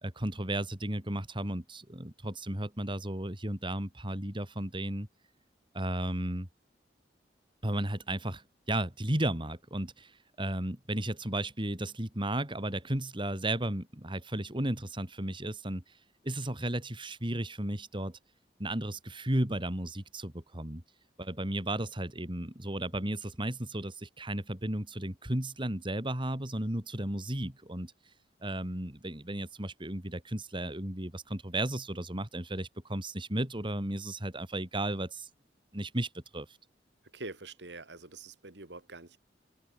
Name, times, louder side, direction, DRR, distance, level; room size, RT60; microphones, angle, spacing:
voice 1, 0.0-5.1 5.7-6.5 7.6-15.8 16.2-18.2 18.6-20.8 21.2-27.9 28.4-35.3 35.7-36.5, right 1 dB, 30° right, 3.1 m, -34 dB
voice 2, 37.1-39.2, right 3 dB, 75° right, 3.0 m, -45 dB
open air
head